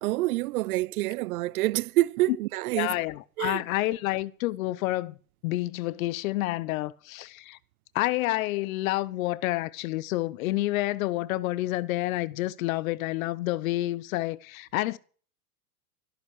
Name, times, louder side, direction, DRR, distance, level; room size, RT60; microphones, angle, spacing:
voice 1, 0.0-2.9 3.4-3.6, right 18 dB, 65° right, 0.7 m, -27 dB
voice 2, 2.7-5.2 5.4-7.6 7.9-15.0, left 17 dB, 60° left, 0.9 m, -29 dB
14.0 x 12.5 x 6.2 m
hypercardioid pair, 115°, 47 cm